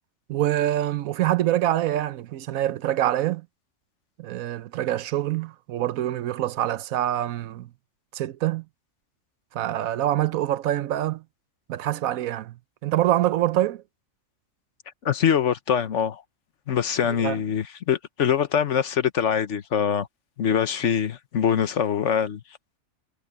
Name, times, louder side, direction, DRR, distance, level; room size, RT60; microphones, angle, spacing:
voice 1, 0.3-3.5 4.2-7.7 8.1-8.6 9.5-11.2 11.7-12.5 12.8-13.8 17.0-17.4, right 13 dB, 85° right, 1.1 m, -25 dB
voice 2, 15.0-16.2 16.7-20.1 20.4-22.4, left 8 dB, 60° left, 1.3 m, -23 dB
omnidirectional pair, 1.4 m